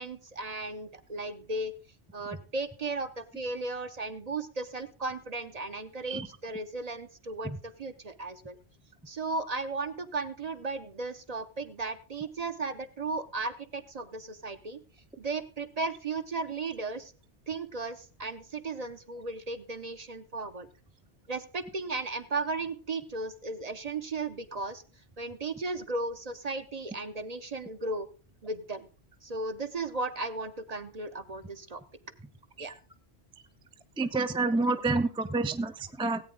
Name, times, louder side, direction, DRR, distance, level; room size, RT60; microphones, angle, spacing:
voice 1, 0.0-1.7 2.1-8.6 9.1-14.8 15.2-17.1 17.5-20.7 21.3-24.8 25.2-28.1 28.4-28.9 29.2-31.8 32.6-32.7, right 3 dB, 40° right, 10 dB, 0.8 m, -35 dB
voice 2, 34.0-36.2, right 3 dB, 5° right, 8 dB, 0.5 m, -28 dB
17.5 x 8.6 x 3.7 m, 0.36 s
omnidirectional pair, 1.1 m